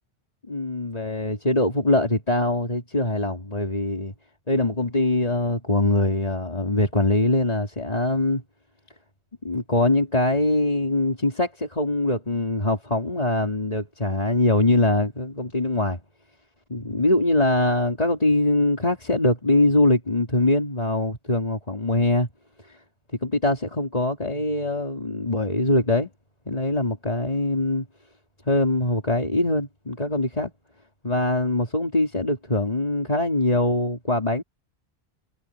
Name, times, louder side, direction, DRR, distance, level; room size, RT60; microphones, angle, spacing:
voice 1, 0.5-4.1 4.5-8.4 9.4-16.0 16.7-22.3 22.6-22.8 23.2-26.1 26.5-27.9 28.5-30.5 31.0-34.4, left 2 dB, 40° left, 3.5 m, -23 dB
omnidirectional pair, 1.1 m